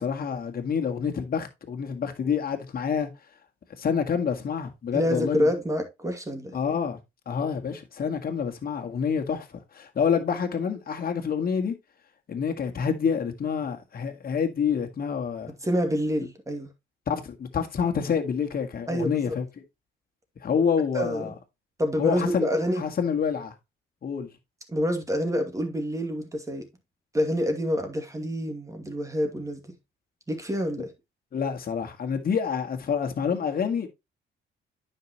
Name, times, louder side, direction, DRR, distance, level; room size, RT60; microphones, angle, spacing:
voice 1, 0.0-3.1 3.8-5.5 6.5-7.0 7.3-11.8 12.3-15.5 17.1-19.4 20.4-21.3 22.0-22.5 22.8-23.5 24.0-24.3 31.3-33.9, left 6 dB, 50° left, 1.8 m, -27 dB
voice 2, 4.9-6.6 15.5-16.7 18.9-19.3 20.9-21.3 21.8-22.8 24.7-26.7 27.1-29.7 30.3-30.9, equal, 15° right, 2.3 m, -27 dB
9.4 x 6.0 x 3.0 m
cardioid pair, 90°, 20 cm